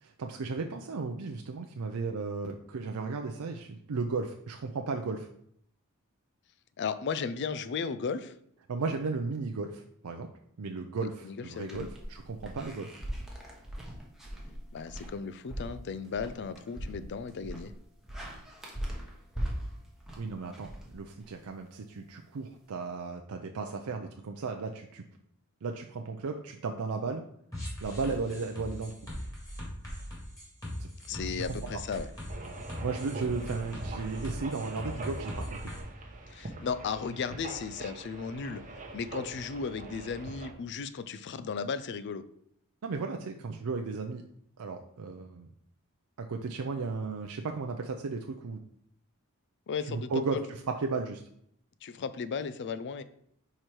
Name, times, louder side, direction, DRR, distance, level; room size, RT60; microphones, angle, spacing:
voice 1, 0.0-5.3 8.7-10.3 10.6-13.0 20.2-25.1 25.6-27.3 27.8-28.9 30.8-31.4 31.7-31.8 32.8-35.7 42.8-44.2 44.6-45.5 46.2-48.6 49.9-50.4 50.7-51.2, right 4 dB, 80° right, 4 dB, 0.5 m, -35 dB
voice 2, 6.8-8.3 11.0-11.9 14.7-17.7 31.0-32.1 36.3-38.6 38.9-42.2 49.7-50.4 51.8-53.0, left 5 dB, 55° left, 13 dB, 0.4 m, -35 dB
sound 1, 11.6-21.5, equal, ahead, 1.1 m, -40 dB
sound 2, 27.5-35.8, equal, 15° left, 2.3 m, -40 dB
sound 3, 32.3-40.5, right 2 dB, 35° right, 0.9 m, -43 dB
4.9 x 4.4 x 4.5 m, 0.68 s
head